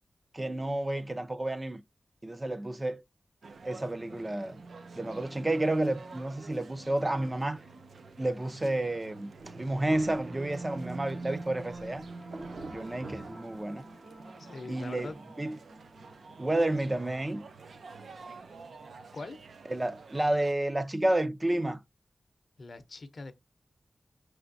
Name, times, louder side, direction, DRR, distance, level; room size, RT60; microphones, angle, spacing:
voice 1, 0.3-1.8 2.2-3.0 3.6-4.6 5.0-7.6 8.2-9.3 9.6-12.0 12.7-13.8 14.7-15.1 15.4-15.6 16.4-17.5 19.7-21.8, right 1 dB, 20° right, 0.4 m, -30 dB
sound 1, 3.4-20.5, right 4 dB, 90° right, 0.6 m, -50 dB
sound 2, 3.9-19.3, right 2 dB, 40° right, 1.1 m, -48 dB
Thunder, 9.4-14.2, right 3 dB, 60° right, 0.8 m, -48 dB
voice 2, 14.4-15.2 19.1-19.4 22.6-23.3, left 3 dB, 55° left, 0.6 m, -42 dB
6.0 x 3.4 x 2.6 m
wide cardioid pair, 120°, 0 cm